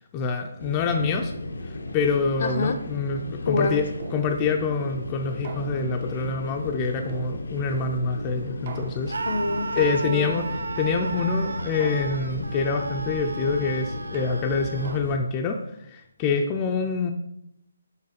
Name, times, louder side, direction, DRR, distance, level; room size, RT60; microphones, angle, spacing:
voice 1, 0.1-1.3 1.7-3.9 4.1-9.1 9.7-17.1, left 4 dB, 20° left, 3 dB, 0.4 m, -26 dB
sound 1, 0.6-15.2, left 2 dB, 85° left, 0.8 m, -35 dB
sound 2, 1.1-1.6 2.4-3.1 4.0-4.8 5.4-6.2 7.1-7.8 8.7-9.4 10.3-10.9 11.8-12.5 13.4-15.5, right 4 dB, 40° right, 0.6 m, -44 dB
voice 2, 2.4-2.8 3.5-3.8 9.3-10.5, left 3 dB, 60° left, 9 dB, 0.7 m, -27 dB
Screaming, 9.1-15.0, right 4 dB, 90° right, 0.4 m, -34 dB
5.6 x 3.7 x 5.1 m, 0.77 s
hypercardioid pair, 160°, 0 cm